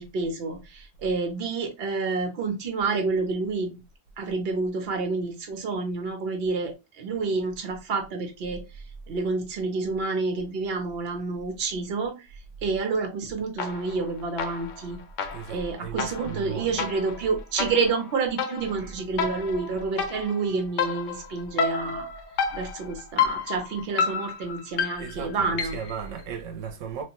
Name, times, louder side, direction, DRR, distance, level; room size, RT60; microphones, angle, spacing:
voice 1, 0.0-3.8 4.2-8.6 9.1-12.2 12.6-15.0 15.5-22.1 22.5-25.7, right 4 dB, 60° right, 0.9 m, -29 dB
sound 1, 13.6-14.1 14.4-26.0, left 6 dB, 85° left, 0.9 m, -31 dB
voice 2, 15.3-16.8 18.7-19.4 25.0-27.0, right 6 dB, 85° right, 0.9 m, -36 dB
3.0 x 2.1 x 2.8 m
omnidirectional pair, 1.3 m